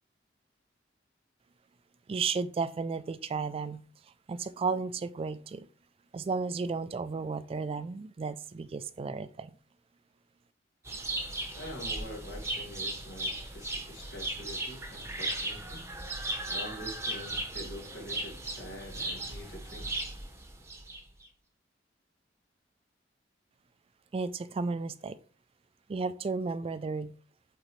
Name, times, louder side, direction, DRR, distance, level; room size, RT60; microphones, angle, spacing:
voice 1, 2.1-3.8 4.3-5.7 6.1-9.5 24.1-25.2 25.9-27.1, right 4 dB, 30° right, 0.3 m, -33 dB
sound 1, 10.9-21.3, right 2 dB, 15° right, 0.8 m, -37 dB
voice 2, 11.5-15.8 16.1-20.0, equal, 80° left, 2.1 m, -45 dB
8.0 x 3.9 x 3.1 m
head